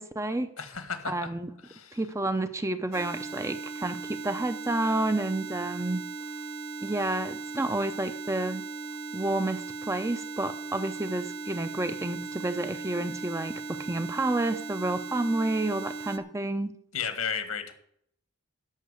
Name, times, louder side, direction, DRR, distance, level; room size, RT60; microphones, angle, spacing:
voice 1, 0.0-0.5 1.1-1.5 1.9-6.0 6.8-8.6 9.1-16.7, right 2 dB, 15° right, 9 dB, 0.6 m, -30 dB
voice 2, 0.6-1.3 1.6-2.0 16.9-17.7, left 6 dB, 80° left, 8 dB, 1.8 m, -33 dB
sound 1, 2.9-16.2, right 2 dB, 45° right, 1.4 m, -38 dB
13.0 x 5.8 x 8.2 m, 0.70 s
head